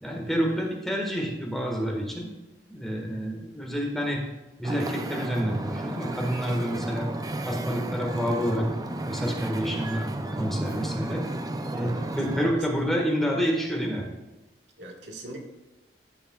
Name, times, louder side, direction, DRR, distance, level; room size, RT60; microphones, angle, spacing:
voice 1, 0.0-2.3 2.7-4.2 4.6-7.1 7.4-8.7 9.1-11.2 11.7-14.0, equal, ahead, -1 dB, 1.6 m, -28 dB
Wind / Ocean, 4.6-12.5, right 1 dB, 20° right, 0.5 m, -33 dB
voice 2, 14.8-15.4, right 1 dB, 85° right, 1 dB, 1.6 m, -40 dB
13.5 x 6.8 x 2.3 m, 1.1 s
head